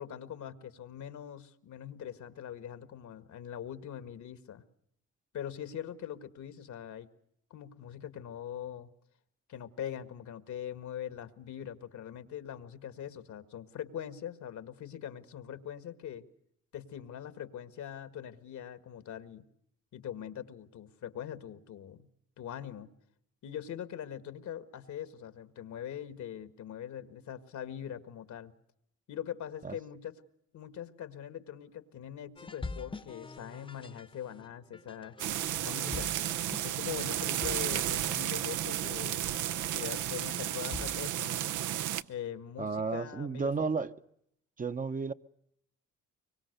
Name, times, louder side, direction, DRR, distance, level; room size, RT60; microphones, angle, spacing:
voice 1, 0.0-4.6 5.3-7.1 7.5-8.9 9.5-16.3 16.7-19.4 19.9-22.1 22.4-22.9 23.4-28.5 29.1-30.2 30.5-35.2 35.6-36.1 36.6-39.3 39.7-41.5 42.1-43.7, left 9 dB, 70° left, 1.7 m, -42 dB
sound 1, 32.4-41.2, left 3 dB, 15° left, 0.9 m, -46 dB
sound 2, 35.2-42.0, right 12 dB, 80° right, 0.8 m, -33 dB
voice 2, 42.6-43.9 44.6-45.1, right 4 dB, 25° right, 0.8 m, -32 dB
24.5 x 23.5 x 6.6 m
cardioid pair, 90°, 30 cm